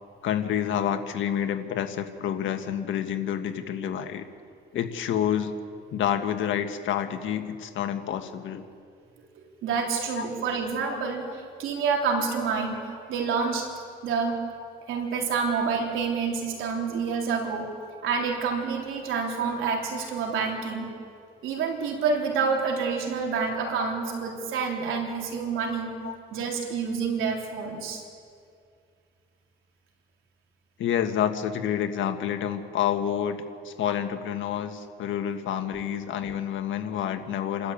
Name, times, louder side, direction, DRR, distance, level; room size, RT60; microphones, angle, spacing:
voice 1, 0.2-4.3 4.7-5.5 5.9-8.6 10.1-10.2 10.9-11.1 26.0-26.1 30.8-37.7, left 9 dB, 75° left, 7 dB, 1.7 m, -28 dB
voice 2, 9.6-11.2 11.6-12.8 13.1-13.7 14.0-14.4 14.9-17.7 18.0-20.9 21.4-26.0 26.3-28.0, right 5 dB, 85° right, 1 dB, 3.7 m, -28 dB
28.5 x 13.0 x 8.7 m, 2.3 s
cardioid pair, 90°, 20 cm